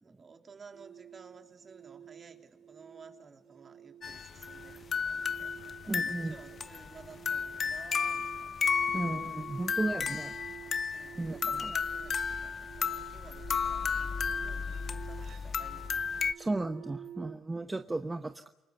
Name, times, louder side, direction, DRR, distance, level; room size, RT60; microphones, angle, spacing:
voice 1, 0.0-9.0 9.9-10.3 10.9-15.9, right 5 dB, 40° right, 5 dB, 3.3 m, -55 dB
sound 1, 0.7-17.4, right 9 dB, 70° right, 1.0 m, -51 dB
sound 2, 4.0-16.3, left 6 dB, 45° left, 1.0 m, -33 dB
voice 2, 5.9-6.3 8.9-10.3 11.1-11.7 16.4-18.5, right 2 dB, 20° right, 8 dB, 1.1 m, -34 dB
29.0 x 18.5 x 8.2 m, 0.98 s
cardioid pair, 90°, 0 cm